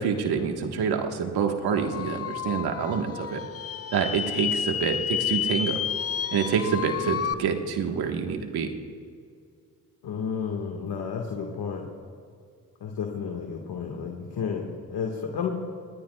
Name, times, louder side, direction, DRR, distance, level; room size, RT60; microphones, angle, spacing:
voice 1, 0.0-3.4 3.9-5.8 6.3-8.7, right 6 dB, 80° right, 4 dB, 1.6 m, -27 dB
sound 1, 1.7-7.3, left 8 dB, 40° left, 0.6 m, -31 dB
voice 2, 10.0-11.9 12.8-15.5, left 6 dB, 80° left, 1 dB, 1.8 m, -32 dB
27.0 x 19.5 x 2.4 m, 2.3 s
supercardioid pair, 55°, 38 cm